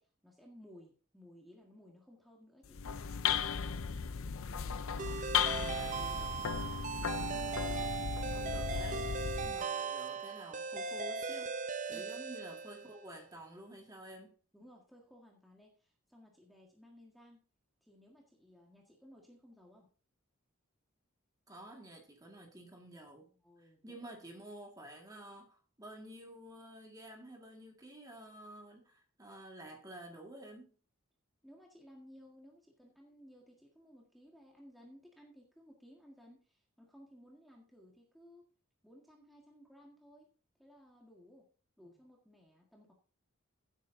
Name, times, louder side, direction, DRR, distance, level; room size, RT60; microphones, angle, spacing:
voice 1, 0.0-2.8 9.4-9.7 11.9-12.1 14.5-17.4 17.8-19.9 23.4-24.1 31.4-38.4 38.8-40.3 40.6-41.5 41.8-42.9, equal, ahead, 1.6 m, -58 dB
sound 1, 2.6-9.6, left 7 dB, 75° left, 0.6 m, -36 dB
voice 2, 4.5-5.2 5.5-8.0 8.3-9.1 9.5-11.6 11.9-14.3 21.5-23.3 23.6-30.7, right 1 dB, 15° right, 1.9 m, -51 dB
sound 2, 5.0-13.1, right 5 dB, 35° right, 0.7 m, -39 dB
16.0 x 8.2 x 2.7 m
head